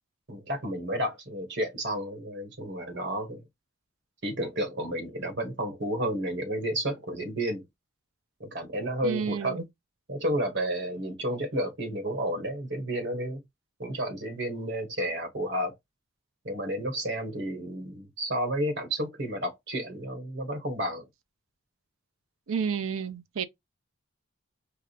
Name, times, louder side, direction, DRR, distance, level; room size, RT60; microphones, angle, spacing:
voice 1, 0.3-3.4 4.2-7.6 8.4-9.6 10.1-13.4 13.8-15.7 16.4-21.1, right 1 dB, 60° right, 1.5 m, -31 dB
voice 2, 9.0-9.6 22.5-23.4, right 6 dB, 90° right, 0.6 m, -30 dB
4.8 x 2.4 x 2.4 m
head